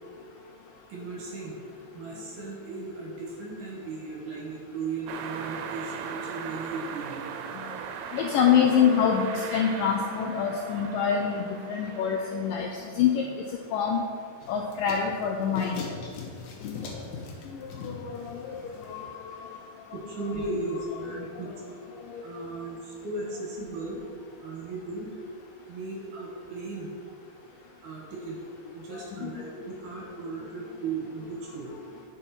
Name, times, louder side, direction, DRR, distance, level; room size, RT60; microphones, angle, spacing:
voice 1, 0.9-1.6 1.9-7.3 19.9-21.5 22.2-24.0 24.4-25.2 25.7-26.9 27.8-28.4 28.7-31.8, right 3 dB, 60° right, -3 dB, 2.5 m, -36 dB
sound 1, 5.1-12.7, right 7 dB, 90° right, 2.6 m, -39 dB
voice 2, 8.1-13.3 13.7-14.0 14.5-15.8 16.6-16.8 17.6-19.4 21.2-21.3 22.1-22.3 29.2-29.5, left 7 dB, 85° left, 1 dB, 2.0 m, -26 dB
sound 2, 14.4-19.1, left 4 dB, 65° left, 2.0 m, -40 dB
9.9 x 6.2 x 4.3 m, 2.1 s
omnidirectional pair, 4.5 m